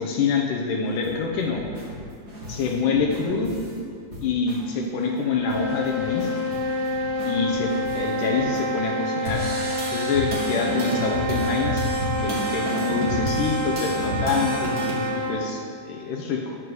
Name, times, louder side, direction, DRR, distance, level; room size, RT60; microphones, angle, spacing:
voice 1, 0.0-1.6 2.5-3.5 4.2-6.4 7.2-9.5 9.9-14.7 15.1-16.6, left 4 dB, 75° left, 0 dB, 2.1 m, -26 dB
sound 1, 0.8-3.8 4.1-4.6 5.0-5.1 5.3-8.6 9.2-15.1, equal, 35° right, 1.7 m, -32 dB
sound 2, 5.2-15.5, equal, 55° right, 1.1 m, -28 dB
12.5 x 9.8 x 3.1 m, 2.6 s
omnidirectional pair, 4.2 m